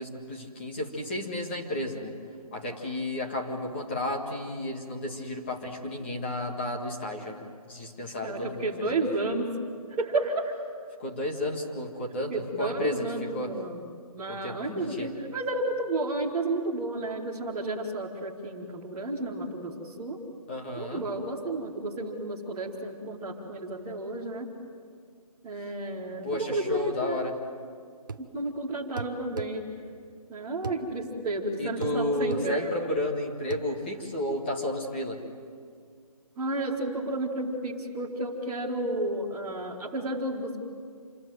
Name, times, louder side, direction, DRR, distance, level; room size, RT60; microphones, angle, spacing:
voice 1, 0.0-2.1 2.5-8.9 11.0-13.5 14.3-15.1 20.5-21.0 26.2-27.3 31.6-35.2, left 1 dB, 20° left, 1 dB, 1.8 m, -32 dB
voice 2, 8.0-9.5 9.9-10.5 12.3-13.8 14.1-20.2 20.7-24.5 25.4-27.3 28.2-29.7 30.3-32.9 36.4-40.6, right 2 dB, 5° right, -9 dB, 1.1 m, -32 dB
sound 1, 28.1-28.3 29.0-29.5 30.6-30.8 31.8-32.0 32.3-32.5 33.5-33.7, right 5 dB, 35° right, 0.8 m, -36 dB
27.5 x 22.0 x 7.9 m, 2.1 s
hypercardioid pair, 175°, 19 cm